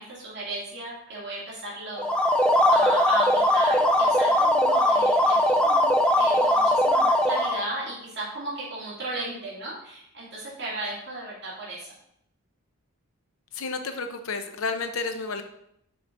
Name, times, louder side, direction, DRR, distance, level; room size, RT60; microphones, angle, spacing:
voice 1, 0.0-5.4 5.6-5.9 6.2-11.9, right 1 dB, 50° right, -6 dB, 2.5 m, -35 dB
sound 1, 2.0-7.7, left 1 dB, 5° left, 0.4 m, -20 dB
voice 2, 13.5-15.4, left 4 dB, 65° left, 8 dB, 0.6 m, -31 dB
6.6 x 4.0 x 4.2 m, 0.75 s
head